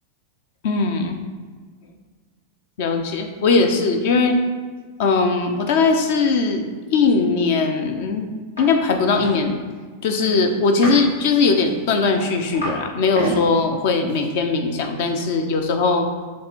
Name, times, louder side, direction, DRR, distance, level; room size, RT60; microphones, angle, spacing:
voice 1, 0.6-1.2 2.8-4.4 5.0-6.6 6.9-8.3 8.6-9.6 10.0-16.1, left 4 dB, 50° left, 6 dB, 0.7 m, -19 dB
sound 1, 8.6-8.7 8.9-9.4 10.6-11.1 11.6-12.8 13.1-13.4 14.1-14.2, equal, 75° left, 1.8 m, -29 dB
7.6 x 3.2 x 4.4 m, 1.5 s
figure-of-eight pair, 90°, 0 cm